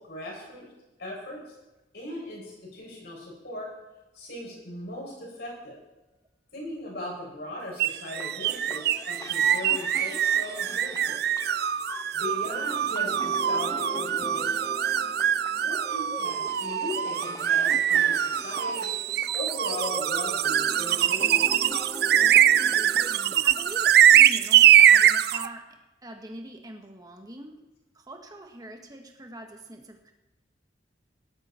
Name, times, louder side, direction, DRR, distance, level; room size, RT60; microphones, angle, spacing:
voice 1, 0.1-0.7 1.0-1.4 1.9-3.7 4.1-5.8 6.5-11.2 12.1-14.7 15.6-18.9 19.3-21.6, left 1 dB, 60° left, -3 dB, 7.0 m, -38 dB
sound 1, 7.8-25.5, right 10 dB, 60° right, 0.4 m, -22 dB
sound 2, 8.2-24.2, left 2 dB, 20° left, 0.5 m, -41 dB
voice 2, 23.4-27.6 27.9-30.1, right 1 dB, 20° right, 3 dB, 1.6 m, -43 dB
18.0 x 12.5 x 4.5 m, 1.0 s
head